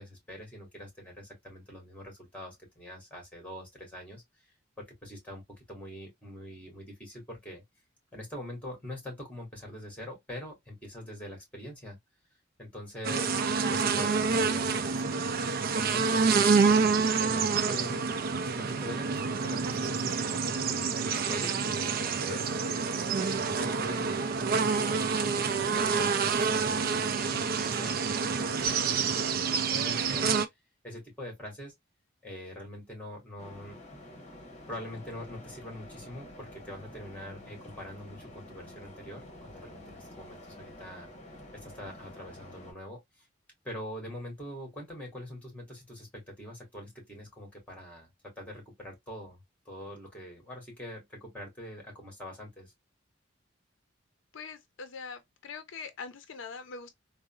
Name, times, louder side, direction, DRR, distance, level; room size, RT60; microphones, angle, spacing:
voice 1, 0.0-4.2 4.8-7.6 8.1-12.0 12.6-13.4 13.7-15.2 15.7-18.0 18.5-22.7 23.2-30.3 30.8-31.7 32.2-33.8 34.7-41.1 41.6-43.2 43.6-49.4 49.6-52.7, left 1 dB, 5° left, 1.7 m, -44 dB
sound 1, 13.0-30.5, right 5 dB, 50° right, 0.4 m, -27 dB
sound 2, 33.4-42.7, left 1 dB, 35° left, 0.9 m, -49 dB
voice 2, 54.3-56.9, left 5 dB, 75° left, 0.5 m, -43 dB
3.7 x 2.0 x 2.3 m
head